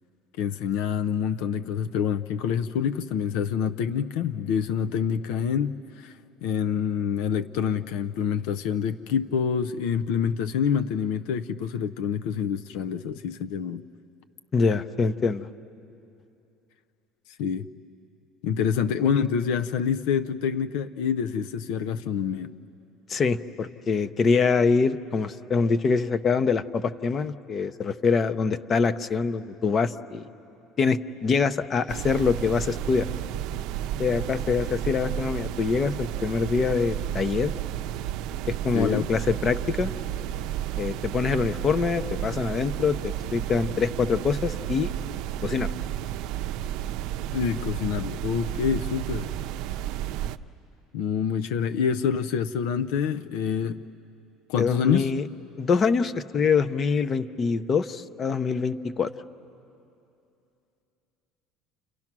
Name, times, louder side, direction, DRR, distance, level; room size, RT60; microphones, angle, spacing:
voice 1, 0.4-13.8 17.4-17.7 18.4-22.5 38.7-39.1 47.3-49.3 50.9-53.8 54.5-55.1, left 7 dB, 80° left, 10 dB, 0.6 m, -27 dB
voice 2, 14.5-15.5 23.1-30.2 30.8-33.1 34.0-37.5 38.6-39.9 40.8-43.0 43.3-44.9 45.4-45.7 54.6-55.3 55.6-59.1, left 5 dB, 30° left, 11 dB, 0.7 m, -24 dB
sound 1, 31.9-50.4, right 11 dB, 65° right, 0.6 m, -32 dB
30.0 x 29.5 x 6.1 m, 2.7 s
cardioid pair, 155°, 0 cm